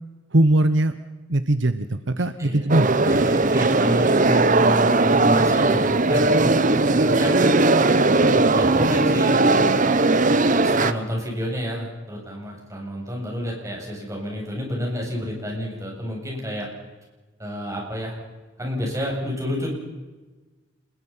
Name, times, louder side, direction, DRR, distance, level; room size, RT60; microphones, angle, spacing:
voice 1, 0.3-0.9 1.3-3.0, right 1 dB, 65° right, 11 dB, 1.1 m, -20 dB
voice 2, 2.4-6.5 6.9-7.6 8.0-9.6 10.5-16.7 17.4-18.2 18.6-19.7, equal, 15° right, -2 dB, 8.0 m, -30 dB
sound 1, 2.7-10.9, right 2 dB, 40° right, 1.0 m, -18 dB
29.5 x 22.0 x 5.7 m, 1.2 s
head